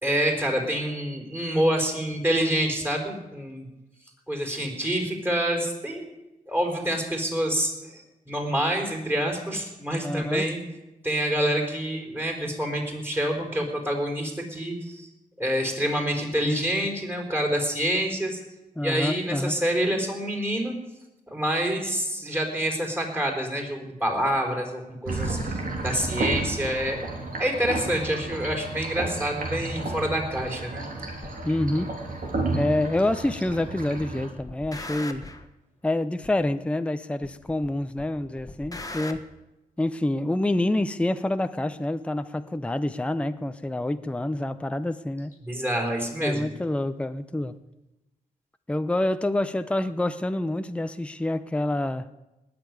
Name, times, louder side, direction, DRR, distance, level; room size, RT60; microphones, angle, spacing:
voice 1, 0.0-3.7 4.3-6.1 6.5-10.6 11.0-15.1 15.4-18.4 18.8-20.7 21.3-27.1 27.4-30.8 45.4-46.6, equal, 15° right, 1 dB, 4.4 m, -27 dB
voice 2, 10.0-10.5 18.8-19.6 31.4-32.0 32.5-35.3 35.8-39.2 39.8-45.4 46.2-47.5 48.7-52.1, left 1 dB, 10° left, 10 dB, 0.6 m, -27 dB
sound 1, 25.1-34.3, right 2 dB, 70° right, 3.3 m, -32 dB
sound 2, 31.2-31.4 32.2-32.3 33.2-33.7 34.0-35.5 36.2-36.3 37.2-37.7 38.0-39.2, left 2 dB, 25° left, 1.4 m, -39 dB
19.0 x 6.9 x 9.5 m, 0.99 s
cardioid pair, 95°, 15 cm